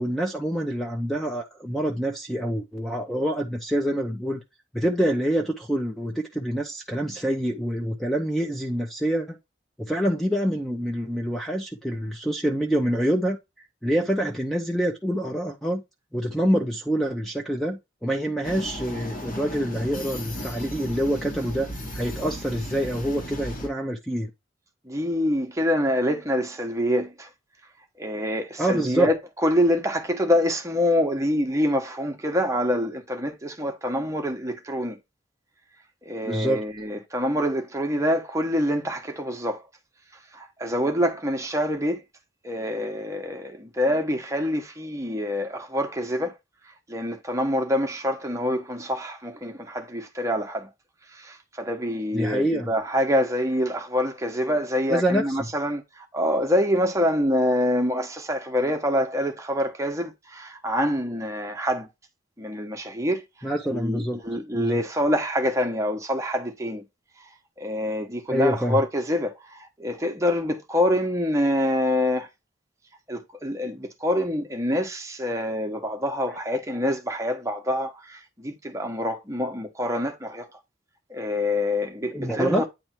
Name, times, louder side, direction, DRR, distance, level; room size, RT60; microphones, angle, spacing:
voice 1, 0.0-4.4 4.7-9.4 9.8-13.4 13.8-15.8 16.1-21.7 21.9-24.3 28.6-29.1 36.3-36.6 52.1-52.7 54.9-55.2 63.4-64.2 64.5-64.8 68.3-68.8 76.3-76.6 82.1-82.7, equal, ahead, 0.7 m, -26 dB
sound 1, 18.4-23.7, equal, 45° left, 1.9 m, -35 dB
voice 2, 24.8-27.3 28.0-35.0 36.0-39.6 40.3-42.0 42.4-46.3 46.9-50.7 51.1-61.9 62.4-66.8 67.6-72.3 73.1-80.5 81.1-82.7, equal, 15° right, 1.1 m, -26 dB
9.1 x 3.4 x 4.4 m
head